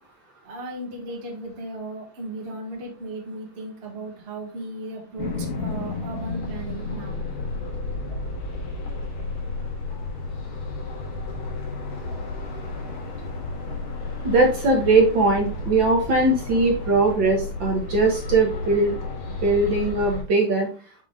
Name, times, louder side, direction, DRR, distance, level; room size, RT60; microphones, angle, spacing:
voice 1, 0.4-5.3 5.6-7.2, right 2 dB, 75° right, 1 dB, 0.5 m, -36 dB
sound 1, 5.2-20.2, left 3 dB, 80° left, 3.3 m, -32 dB
voice 2, 14.2-18.9 19.4-20.7, right 2 dB, 60° right, 0 dB, 1.2 m, -20 dB
7.4 x 3.9 x 3.7 m, 0.38 s
omnidirectional pair, 3.7 m